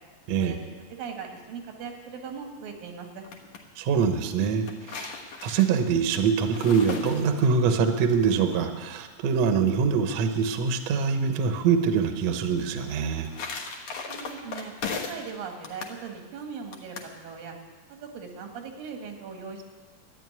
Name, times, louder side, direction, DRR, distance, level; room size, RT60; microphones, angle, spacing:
voice 1, 0.9-3.3 14.1-17.6 17.9-19.6, right 6 dB, 90° right, 3 dB, 3.6 m, -39 dB
sound 1, 3.0-3.6 4.4-7.7 12.9-15.3 15.6-16.0 16.7-17.1, left 5 dB, 65° left, 2.5 m, -37 dB
voice 2, 3.8-5.1 5.4-13.3, right 6 dB, 65° right, 7 dB, 1.9 m, -24 dB
12.5 x 9.9 x 9.6 m, 1.4 s
omnidirectional pair, 3.9 m